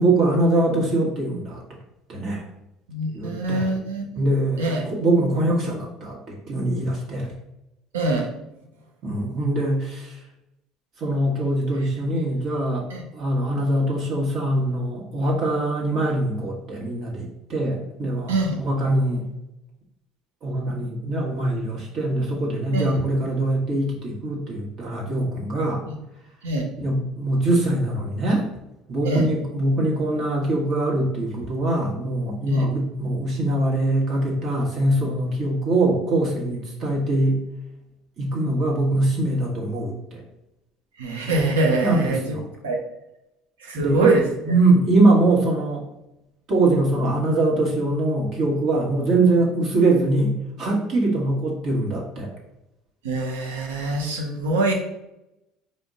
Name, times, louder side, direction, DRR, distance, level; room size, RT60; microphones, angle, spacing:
voice 1, 0.0-1.6 2.1-2.4 3.1-3.7 4.2-7.3 9.0-10.1 11.0-12.8 13.1-19.3 20.4-25.8 26.8-28.5 28.9-37.4 38.2-40.2 41.8-42.4 43.7-44.1 44.4-45.8 46.5-52.3, right 2 dB, 55° right, -2 dB, 1.3 m, -23 dB
voice 2, 2.9-4.2 4.6-4.8 7.9-8.3 12.9-13.0 18.3-18.5 22.7-23.0 25.9-26.0 26.4-26.7 29.0-29.3 32.5-32.6 41.0-42.3 42.6-42.8 43.6-44.2 53.0-54.7, right 2 dB, 80° right, 1 dB, 0.7 m, -24 dB
5.0 x 2.1 x 3.6 m, 0.89 s
hypercardioid pair, 65°, 0 cm